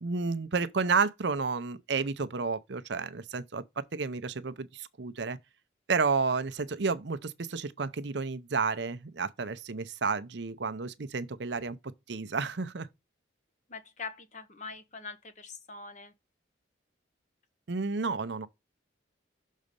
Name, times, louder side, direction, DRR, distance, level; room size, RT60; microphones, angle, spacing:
voice 1, 0.0-3.6 3.9-5.4 5.9-11.8 12.1-12.9 17.7-18.5, right 4 dB, 65° right, 0.6 m, -31 dB
voice 2, 13.7-16.1, left 4 dB, 40° left, 1.0 m, -43 dB
6.5 x 4.1 x 5.1 m
head